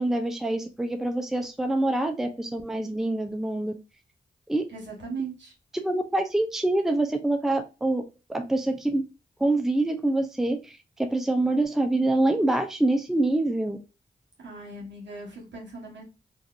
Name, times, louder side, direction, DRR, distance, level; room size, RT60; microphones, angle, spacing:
voice 1, 0.0-3.7 4.5-4.6 5.7-8.0 8.3-9.0 9.4-10.6 11.0-13.8, right 2 dB, ahead, 6 dB, 0.5 m, -25 dB
voice 2, 4.7-5.5 14.4-16.0, right 3 dB, 75° right, -1 dB, 1.2 m, -38 dB
2.7 x 2.4 x 2.4 m, 0.28 s
cardioid pair, 50°, 19 cm